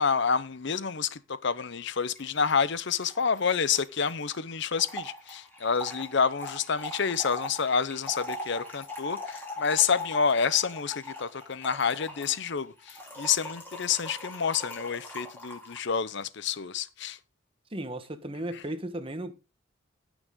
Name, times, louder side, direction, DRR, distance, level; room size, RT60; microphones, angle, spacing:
voice 1, 0.0-17.2 18.5-18.6, left 6 dB, 55° left, 0.7 m, -28 dB
Trickle dribble / Fill (with liquid), 2.2-2.3 2.5-2.6 2.8-15.9, left 1 dB, 10° left, 3.6 m, -41 dB
voice 2, 17.7-19.3, right 1 dB, 25° right, 1.2 m, -35 dB
15.5 x 6.3 x 3.7 m
head